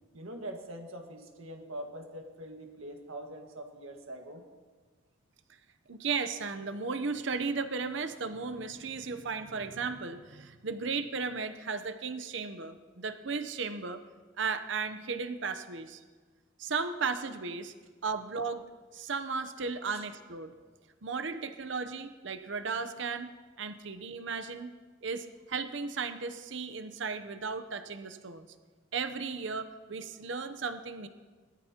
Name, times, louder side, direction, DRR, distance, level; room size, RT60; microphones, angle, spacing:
voice 1, 0.1-4.4 19.8-20.0, right 1 dB, 85° right, 2 dB, 1.7 m, -43 dB
voice 2, 5.9-14.0 14.4-16.0 16.6-17.7 18.0-18.7 18.9-20.5 21.0-24.7 25.0-28.5 28.9-31.1, right 4 dB, 60° right, 9 dB, 0.8 m, -35 dB
20.5 x 13.5 x 2.9 m, 1.4 s
head